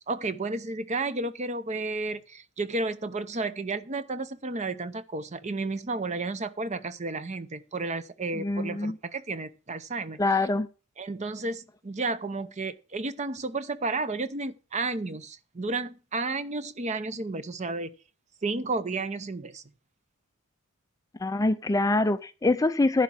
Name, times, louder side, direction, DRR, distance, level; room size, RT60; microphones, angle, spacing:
voice 1, 0.1-10.2 11.0-17.9 18.4-19.6, right 3 dB, 30° right, 0.7 m, -32 dB
voice 2, 8.4-9.0 10.2-10.7 21.2-23.0, left 2 dB, 15° left, 0.4 m, -24 dB
11.0 x 4.6 x 7.5 m
head